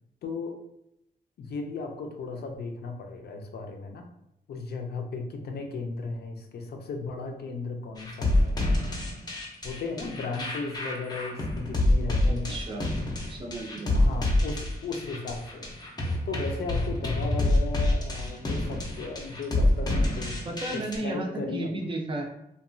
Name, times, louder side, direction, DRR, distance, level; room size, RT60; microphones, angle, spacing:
voice 1, 0.2-0.6 1.4-4.1 4.5-8.6 9.6-12.6 13.9-15.7 16.2-20.4 20.7-21.7, left 3 dB, 80° left, 4 dB, 0.5 m, -36 dB
sound 1, 8.0-21.0, left 1 dB, 25° left, 0.4 m, -27 dB
voice 2, 12.2-12.8 13.3-14.0 20.4-22.2, right 2 dB, 30° right, 1 dB, 0.4 m, -34 dB
2.9 x 2.2 x 2.5 m, 0.81 s
wide cardioid pair, 165°, 17 cm